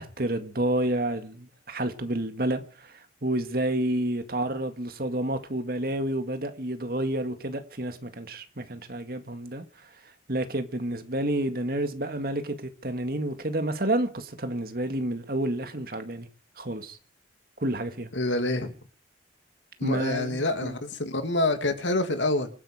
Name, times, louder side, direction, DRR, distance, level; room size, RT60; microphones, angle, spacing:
voice 1, 0.0-9.6 10.3-16.3 16.6-17.0 17.6-18.1 19.8-20.7, right 1 dB, 55° right, 2.1 m, -29 dB
voice 2, 18.1-18.7 19.8-22.5, left 2 dB, 85° left, 2.5 m, -27 dB
26.0 x 11.0 x 5.0 m
head